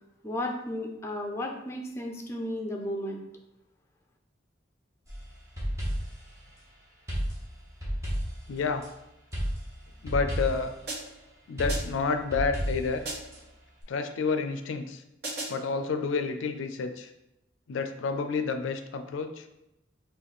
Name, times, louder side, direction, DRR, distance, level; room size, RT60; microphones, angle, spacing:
voice 1, 0.2-3.2, left 1 dB, 15° left, 1 dB, 0.4 m, -34 dB
sound 1, 5.1-6.3 7.1-8.9 9.3-10.8 11.6-13.4, equal, 15° right, 1.0 m, -32 dB
voice 2, 8.5-8.8 10.0-10.7 11.5-13.0 13.9-15.0 15.5-17.1 17.7-19.4, left 4 dB, 80° left, 7 dB, 0.4 m, -29 dB
sound 2, 10.9-11.3 11.7-12.1 13.0-13.5 15.2-15.7, right 2 dB, 55° right, 1.4 m, -37 dB
3.4 x 2.6 x 3.9 m, 0.89 s
head